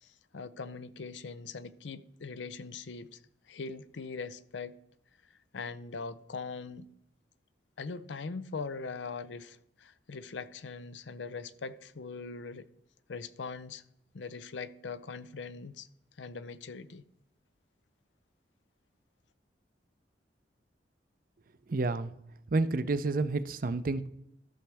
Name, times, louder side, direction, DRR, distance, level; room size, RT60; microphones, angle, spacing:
voice 1, 0.0-3.2 3.5-4.8 5.5-6.9 7.8-12.7 13.1-13.8 14.1-15.9 16.2-17.0, left 4 dB, 85° left, 0.6 m, -41 dB
voice 2, 21.7-22.1 22.5-24.1, right 3 dB, 50° right, 0.5 m, -29 dB
14.0 x 6.4 x 3.4 m
head